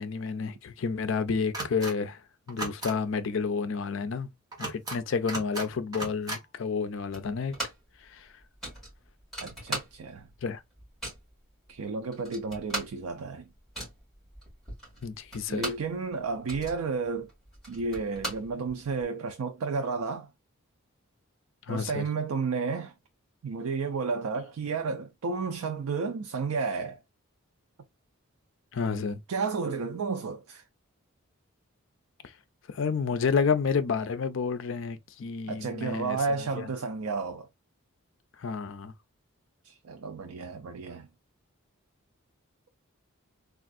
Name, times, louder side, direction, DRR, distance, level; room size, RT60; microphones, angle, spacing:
voice 1, 0.0-2.2 2.5-4.3 4.6-7.6 8.1-8.3 10.4-10.6 15.0-15.7 21.7-22.0 28.7-29.2 32.7-36.2 36.6-36.7 38.4-38.9, left 5 dB, 55° left, 0.4 m, -30 dB
sound 1, 1.5-1.9 2.5-2.9 4.5-5.0 5.3-5.7 5.9-6.4, right 1 dB, 15° right, 1.1 m, -35 dB
sound 2, 7.1-8.0 8.2-8.3 8.6-10.3 10.6-11.3 11.8-11.9 12.1-15.9 16.3-19.0, right 1 dB, ahead, 2.1 m, -38 dB
voice 2, 9.4-10.3 11.7-13.5 15.5-17.3 17.7-20.3 21.7-22.9 23.4-27.0 29.3-30.6 35.5-37.5 39.6-41.1, right 4 dB, 80° right, 0.4 m, -32 dB
3.4 x 2.4 x 2.4 m
head